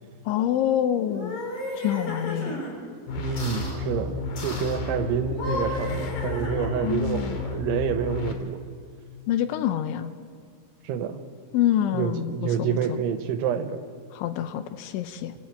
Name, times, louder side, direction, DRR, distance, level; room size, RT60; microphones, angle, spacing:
voice 1, 0.3-1.4 1.7-2.7 6.8-7.4 9.3-10.1 11.5-13.0 14.1-15.3, left 11 dB, 80° left, 10 dB, 3.0 m, -26 dB
sound 1, 1.0-2.7 3.4-3.8 4.4-4.8 5.2-7.0, left 1 dB, 35° left, 5.8 m, -34 dB
sound 2, 3.1-8.3, left 4 dB, 55° left, 2.8 m, -31 dB
voice 2, 3.2-8.6 10.8-11.2 11.9-13.8, right 7 dB, 75° right, 8 dB, 3.2 m, -28 dB
28.5 x 14.0 x 8.8 m, 2.1 s
omnidirectional pair, 5.8 m